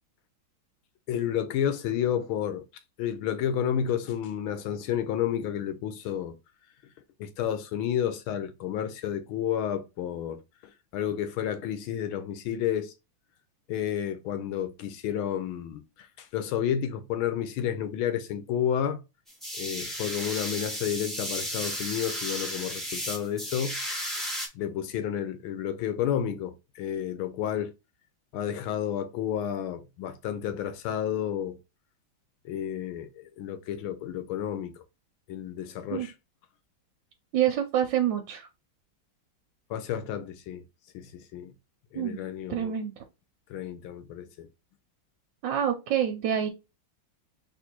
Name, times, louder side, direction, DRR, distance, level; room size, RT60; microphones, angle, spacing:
voice 1, 1.1-2.6 3.0-6.3 7.2-10.4 10.9-12.9 13.7-19.0 19.6-23.8 24.5-27.7 28.3-31.6 32.4-34.7 35.3-36.1 39.7-40.6 40.9-41.5 41.9-42.7 43.5-44.5, left 9 dB, 85° left, 1.6 m, -31 dB
sound 1, 19.3-24.5, equal, ahead, 0.6 m, -34 dB
voice 2, 37.3-38.5 41.9-42.2 42.5-42.9 45.4-46.5, right 10 dB, 70° right, 1.4 m, -27 dB
4.1 x 2.6 x 4.3 m
omnidirectional pair, 2.2 m